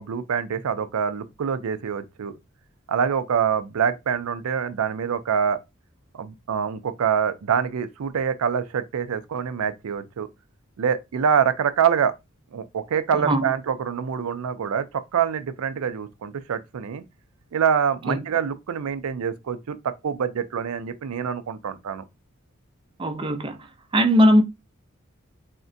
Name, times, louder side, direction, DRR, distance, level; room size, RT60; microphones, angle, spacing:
voice 1, 0.0-2.3 2.9-5.6 6.1-10.3 10.8-12.1 12.5-17.0 17.5-22.0, right 7 dB, 90° right, 0.4 m, -25 dB
voice 2, 23.0-23.6 23.9-24.4, equal, 25° right, 0.4 m, -18 dB
3.5 x 2.1 x 2.6 m
head